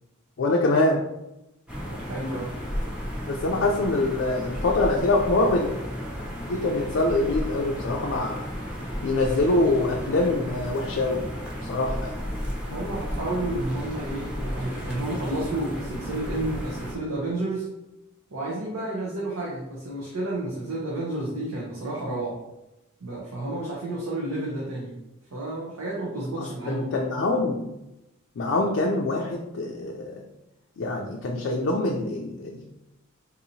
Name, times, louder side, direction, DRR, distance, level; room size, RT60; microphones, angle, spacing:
voice 1, 0.4-1.0 3.3-5.7 6.5-8.5 9.0-11.2 11.7-12.1 26.4-27.7 28.4-30.2 30.8-32.6, left 2 dB, 55° left, -1 dB, 0.4 m, -24 dB
sound 1, 1.7-17.0, equal, 5° right, 0.7 m, -33 dB
voice 2, 1.8-2.5 12.7-17.7 18.3-22.4 23.0-25.0 25.3-26.9, right 1 dB, 75° right, -5 dB, 0.8 m, -31 dB
4.0 x 2.8 x 2.7 m, 0.92 s
head